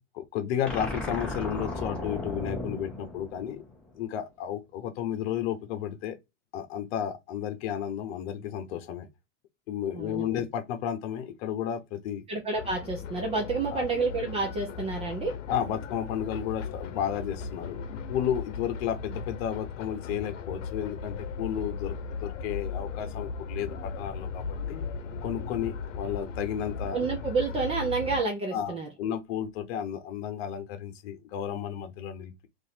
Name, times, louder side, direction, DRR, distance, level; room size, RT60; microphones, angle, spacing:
voice 1, 0.1-3.6 3.9-6.2 6.5-9.1 9.7-12.2 13.7-13.8 15.5-24.9 25.2-27.0 28.5-32.5, left 9 dB, 55° left, 0.9 m, -33 dB
sound 1, 0.7-4.0, left 2 dB, 5° left, 0.9 m, -35 dB
voice 2, 9.9-10.5 12.3-15.4 26.9-28.9, right 4 dB, 15° right, 0.6 m, -29 dB
sound 2, 12.6-28.2, left 5 dB, 80° left, 0.8 m, -37 dB
3.0 x 2.7 x 4.2 m
supercardioid pair, 145°, 37 cm